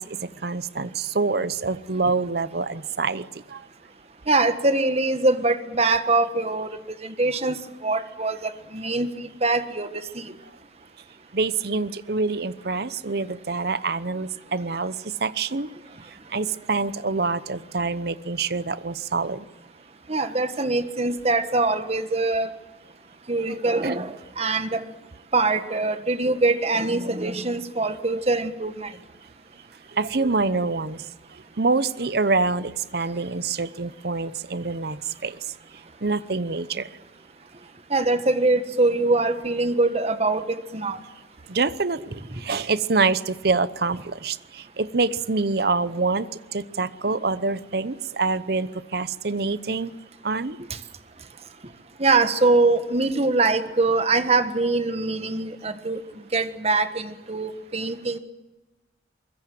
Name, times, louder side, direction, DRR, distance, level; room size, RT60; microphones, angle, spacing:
voice 1, 0.0-3.6 11.3-14.9 15.2-15.7 16.3-19.4 23.8-24.0 29.9-35.5 36.0-36.9 41.5-49.9 50.2-50.6, right 3 dB, 60° right, 16 dB, 0.9 m, -26 dB
voice 2, 4.3-6.7 7.0-10.3 20.1-22.5 23.3-24.8 25.3-28.9 37.9-41.0 42.3-42.6 50.7-50.8 52.0-56.0 56.3-58.2, right 3 dB, 35° right, 10 dB, 1.5 m, -23 dB
24.0 x 21.5 x 7.7 m, 1.1 s
head